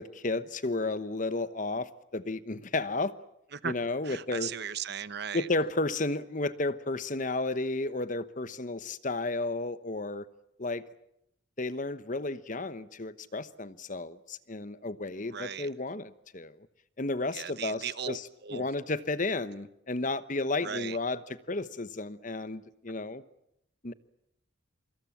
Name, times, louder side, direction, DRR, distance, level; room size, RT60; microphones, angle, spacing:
voice 1, 0.0-3.1 3.6-4.5 5.3-10.3 10.6-10.8 11.6-16.7 17.0-21.2 21.5-23.2 23.8-23.9, left 2 dB, 40° left, 1.0 m, -33 dB
voice 2, 4.0-5.5 15.3-15.7 17.3-18.7 20.6-21.0, right 7 dB, 55° right, 1.0 m, -37 dB
26.5 x 25.5 x 7.4 m
head